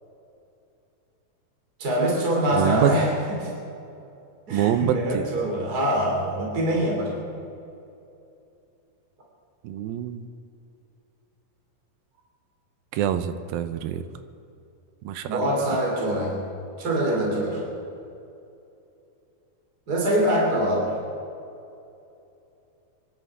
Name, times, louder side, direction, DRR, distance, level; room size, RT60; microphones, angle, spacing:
voice 1, 1.8-3.5 4.5-7.1 15.2-16.4 16.8-17.6 19.9-20.9, right 1 dB, 25° right, -2 dB, 3.2 m, -24 dB
voice 2, 2.5-2.9 4.5-5.3 9.6-10.2 12.9-14.0 15.0-15.5, right 10 dB, 80° right, 10 dB, 2.5 m, -25 dB
25.0 x 11.5 x 4.8 m, 2.7 s
omnidirectional pair, 4.2 m